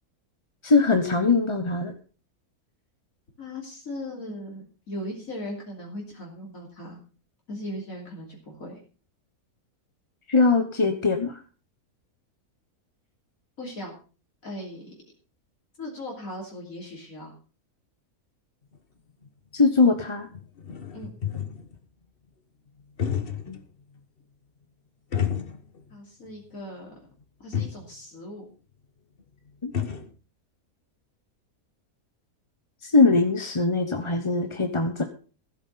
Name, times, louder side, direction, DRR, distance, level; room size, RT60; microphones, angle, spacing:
voice 1, 0.6-1.9 10.3-11.4 19.5-20.3 23.5-23.6 29.6-29.7 32.8-35.0, left 3 dB, 25° left, 6 dB, 1.0 m, -21 dB
voice 2, 3.4-7.0 7.5-8.8 13.6-14.0 14.4-14.9 15.8-17.3 20.9-21.2 25.9-26.9 27.4-28.4, left 1 dB, 65° left, -2 dB, 3.5 m, -38 dB
sound 1, 18.7-18.8 19.2-19.3 20.0-20.1 20.3-21.8 22.8-23.6 24.0-24.1 25.1-26.0 26.2-26.3 27.2-27.3 27.5-27.9 29.2-29.3 29.5-30.1, left 8 dB, 40° left, 1.4 m, -30 dB
15.0 x 8.2 x 5.7 m, 0.37 s
omnidirectional pair, 1.6 m